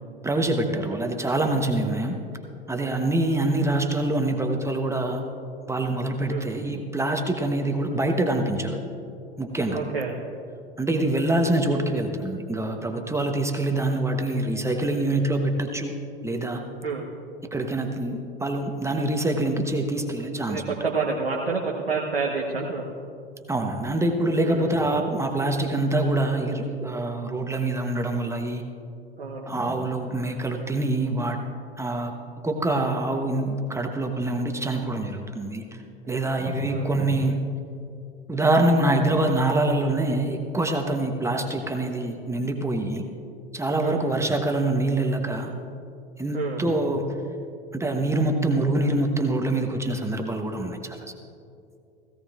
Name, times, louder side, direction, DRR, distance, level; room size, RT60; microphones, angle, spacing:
voice 1, 0.2-2.2 2.7-5.2 5.7-8.8 9.4-9.8 10.8-15.9 16.2-16.6 17.5-20.6 23.5-28.6 29.5-31.4 31.8-32.1 32.4-35.8 36.1-37.4 38.3-43.0 43.5-45.5 46.2-47.2 47.7-51.1, right 2 dB, 10° right, 3 dB, 1.0 m, -25 dB
voice 2, 9.7-10.1 16.8-17.1 20.5-22.9 24.4-24.8 29.2-29.5 36.0-36.9 43.8-44.0 46.3-46.6, right 4 dB, 90° right, -2 dB, 1.2 m, -29 dB
17.5 x 16.0 x 2.5 m, 2.6 s
figure-of-eight pair, 85°, 29 cm